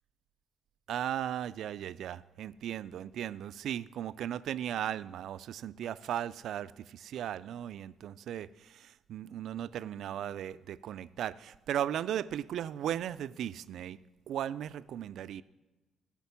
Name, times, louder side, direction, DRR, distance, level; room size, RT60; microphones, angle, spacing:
voice 1, 0.9-14.0 14.3-15.4, right 10 dB, 75° right, 16 dB, 0.3 m, -37 dB
12.5 x 5.8 x 7.0 m, 1.1 s
cardioid pair, 90°, 0 cm